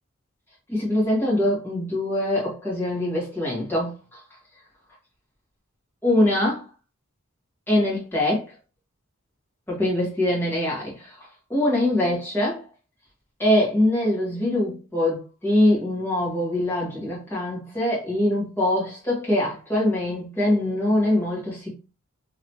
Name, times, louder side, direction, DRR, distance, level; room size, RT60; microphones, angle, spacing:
voice 1, 0.7-4.2 6.0-6.6 7.7-8.5 9.7-11.2 11.5-12.6 13.4-21.7, left 1 dB, 10° left, 1.5 m, -23 dB
3.1 x 2.8 x 2.9 m
head